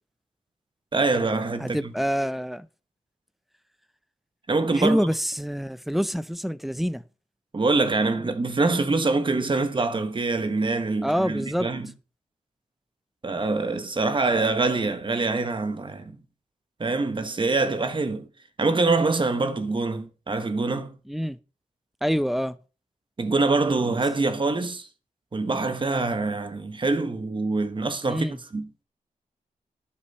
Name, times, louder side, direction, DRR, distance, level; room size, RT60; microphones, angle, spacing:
voice 1, 0.9-1.9 4.5-5.0 7.5-11.9 13.2-16.2 16.8-18.3 18.6-20.9 23.2-24.9 25.3-28.3 28.5-28.8, right 3 dB, 35° right, 1.4 m, -25 dB
voice 2, 1.6-2.7 4.8-7.0 11.0-11.7 21.1-21.4 22.0-22.6 28.1-28.4, equal, ahead, 0.6 m, -26 dB
11.5 x 8.7 x 4.2 m
wide cardioid pair, 105°, 14 cm